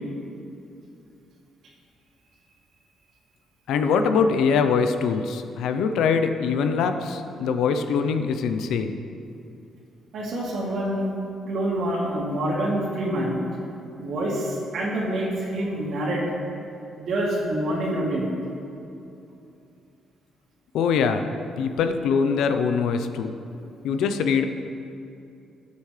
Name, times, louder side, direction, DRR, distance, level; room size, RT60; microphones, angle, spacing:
voice 1, 3.7-9.0 20.7-21.3 21.6-23.3 23.8-24.4, left 5 dB, 85° left, 8 dB, 0.6 m, -23 dB
voice 2, 10.1-11.1 11.5-13.4 14.0-16.2 17.0-18.3, right 1 dB, 70° right, -4 dB, 2.7 m, -26 dB
15.0 x 8.3 x 3.3 m, 2.7 s
cardioid pair, 90°, 0 cm